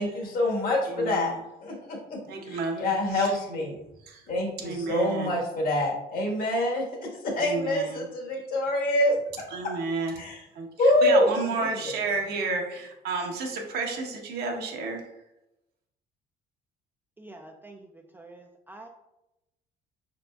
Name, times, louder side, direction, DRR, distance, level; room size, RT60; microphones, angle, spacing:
voice 1, 0.0-1.3 1.6-2.2 2.4-3.7 4.3-9.2 9.6-9.7 10.2-10.4 10.8-11.9, left 1 dB, 60° left, -1 dB, 1.4 m, -26 dB
voice 2, 0.9-1.4 2.3-3.3 3.6-3.7 4.1-4.2 4.6-5.4 7.4-8.0 9.5-10.2 10.5-15.1, right 4 dB, 75° right, 1 dB, 0.9 m, -32 dB
voice 3, 17.2-18.9, right 2 dB, 10° right, 2 dB, 0.3 m, -47 dB
5.3 x 3.9 x 2.3 m, 0.91 s
cardioid pair, 110°, 17 cm